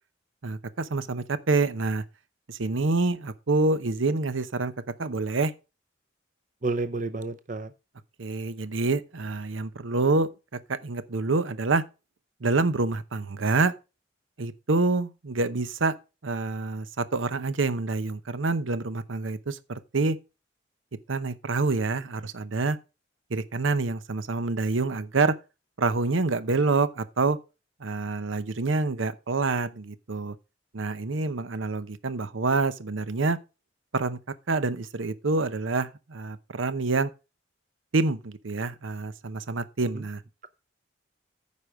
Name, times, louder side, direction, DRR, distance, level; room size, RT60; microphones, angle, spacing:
voice 1, 0.4-2.0 2.5-4.7 5.0-5.5 8.2-10.3 10.7-11.8 12.4-13.7 14.4-15.9 16.2-20.2 21.1-22.8 23.3-25.3 25.8-27.4 27.8-30.3 30.7-33.4 33.9-34.2 34.5-37.1 37.9-40.2, right 3 dB, 90° right, 0.8 m, -27 dB
voice 2, 6.6-7.7 39.9-40.0, right 3 dB, 40° right, 0.6 m, -30 dB
9.6 x 5.1 x 6.2 m
head